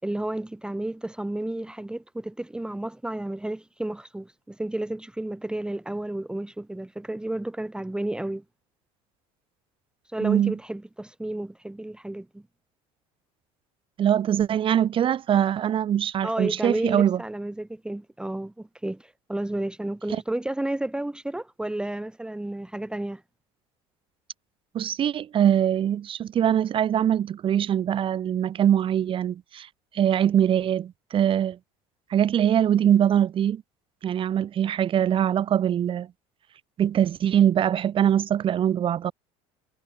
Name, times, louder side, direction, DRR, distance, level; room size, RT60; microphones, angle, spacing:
voice 1, 0.0-8.4 10.1-12.4 16.2-23.2, right 1 dB, 5° right, 1.5 m, -32 dB
voice 2, 10.2-10.6 14.0-17.2 20.1-20.2 24.7-29.7 29.9-31.6 32.1-33.6 34.0-36.1 36.8-39.1, right 10 dB, 40° right, 1.2 m, -22 dB
supercardioid pair, 105°, 14 cm